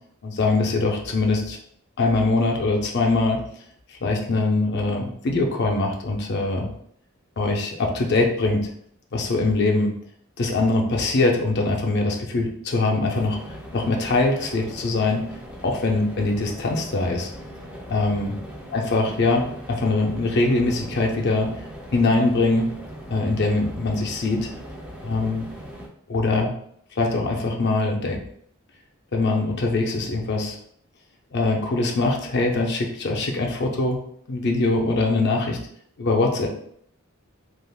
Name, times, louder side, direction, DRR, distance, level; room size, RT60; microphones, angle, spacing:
voice 1, 0.2-1.6 2.0-3.4 4.0-6.7 7.4-8.6 9.1-9.9 10.4-13.4 13.7-15.2 15.6-17.3 17.9-18.3 18.7-21.5 21.9-22.7 23.1-24.5 25.0-25.5 26.1-26.5 27.0-28.2 29.1-30.6 31.3-34.0 34.3-35.6 36.0-36.5, left 2 dB, 50° left, 1 dB, 0.5 m, -22 dB
sound 1, 13.1-25.9, equal, 5° right, 0.4 m, -40 dB
3.4 x 2.4 x 2.3 m, 0.66 s
head